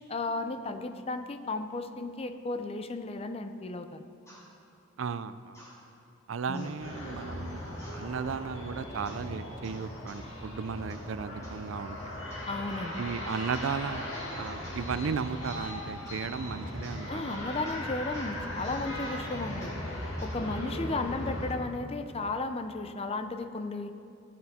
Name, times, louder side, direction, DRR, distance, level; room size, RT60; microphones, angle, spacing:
voice 1, 0.0-4.1 6.5-6.7 12.5-13.0 17.1-19.7 20.2-23.9, left 3 dB, 30° left, 9 dB, 0.5 m, -34 dB
sound 1, 4.3-4.4 5.5-5.8 6.5-6.8 7.8-8.0 9.0-9.3 9.6-10.3 10.9-11.1 11.4-11.6 12.3-12.6 13.5-13.8 14.1-14.3 14.6-14.8 15.4-15.7 16.1-16.3 16.8-17.0 17.7-17.8 18.1-18.3 18.6-18.8 19.6-19.8 20.2-20.4, equal, 15° left, 2.4 m, -53 dB
voice 2, 5.0-5.6 6.3-7.6 7.9-12.0 13.0-14.1 14.3-17.4 20.5-20.6, right 6 dB, 80° right, 13 dB, 0.4 m, -35 dB
sound 2, 6.8-21.5, left 1 dB, 80° left, 2.3 m, -38 dB
16.5 x 8.8 x 4.2 m, 2.6 s
head